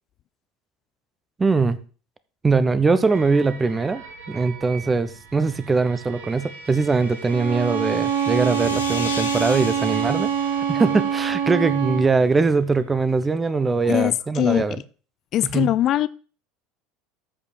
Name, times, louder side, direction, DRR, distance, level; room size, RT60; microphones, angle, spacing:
voice 1, 1.4-1.8 2.4-4.0 4.3-14.8 15.5-15.7, right 4 dB, 20° right, 15 dB, 0.9 m, -21 dB
sound 1, 3.1-11.6, right 5 dB, 80° right, 2.2 m, -41 dB
sound 2, 6.3-11.9, left 4 dB, 90° left, 1.4 m, -37 dB
Bowed string instrument, 7.3-12.1, right 8 dB, 60° right, 0.9 m, -24 dB
voice 2, 13.9-14.8 15.3-16.1, left 12 dB, 50° left, 17 dB, 0.4 m, -21 dB
13.5 x 5.2 x 4.5 m, 0.39 s
hypercardioid pair, 70°, 0 cm